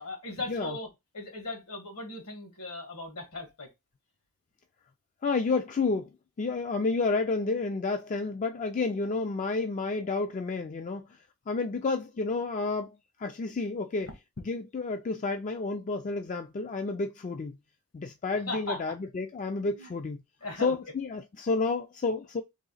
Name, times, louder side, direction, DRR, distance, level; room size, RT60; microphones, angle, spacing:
voice 1, 0.0-3.7 18.3-18.8 19.8-19.9 20.4-20.8, left 2 dB, 80° left, 1.7 m, -38 dB
voice 2, 5.2-6.1 6.4-11.2 11.5-14.1 14.5-17.6 17.9-20.2 20.6-22.4, left 3 dB, 35° left, 0.4 m, -30 dB
3.9 x 2.8 x 3.9 m
head